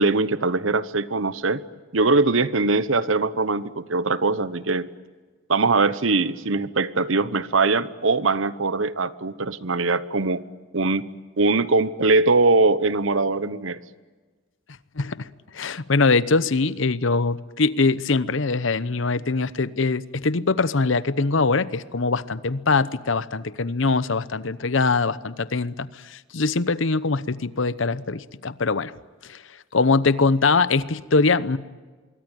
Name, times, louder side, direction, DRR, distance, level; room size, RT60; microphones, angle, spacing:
voice 1, 0.0-1.6 1.9-4.9 5.5-10.4 10.7-11.1 11.4-13.8, right 3 dB, 75° right, 15 dB, 1.1 m, -21 dB
voice 2, 15.0-15.3 15.5-28.9 29.2-29.4 29.7-31.6, left 3 dB, 70° left, 16 dB, 0.9 m, -22 dB
25.5 x 23.0 x 9.1 m, 1.4 s
head